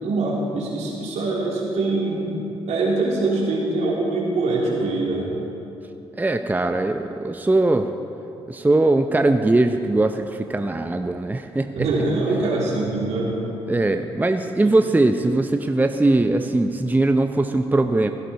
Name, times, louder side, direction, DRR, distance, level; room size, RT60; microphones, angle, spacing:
voice 1, 0.0-2.2 2.7-5.3 11.8-13.4 14.6-14.7, right 2 dB, 70° right, -3 dB, 2.9 m, -23 dB
voice 2, 6.2-7.9 8.5-11.9 13.7-18.1, right 2 dB, 15° right, 7 dB, 0.6 m, -20 dB
16.0 x 11.0 x 4.2 m, 2.8 s
supercardioid pair, 55°, 12 cm